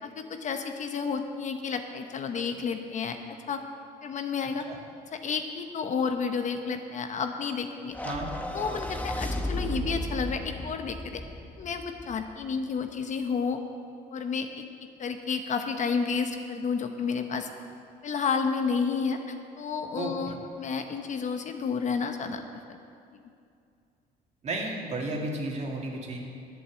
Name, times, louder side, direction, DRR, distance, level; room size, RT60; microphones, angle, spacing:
voice 1, 0.0-3.2 3.5-3.6 4.0-4.7 5.1-8.0 8.5-11.2 11.6-13.6 14.1-14.6 15.0-17.5 18.0-22.8, left 5 dB, 45° left, 6 dB, 0.9 m, -31 dB
sound 1, 7.9-12.4, equal, 10° left, 0.9 m, -34 dB
voice 2, 19.9-20.4 24.4-26.2, right 2 dB, 40° right, 0 dB, 2.3 m, -33 dB
11.5 x 8.4 x 7.4 m, 2.4 s
cardioid pair, 110°, 17 cm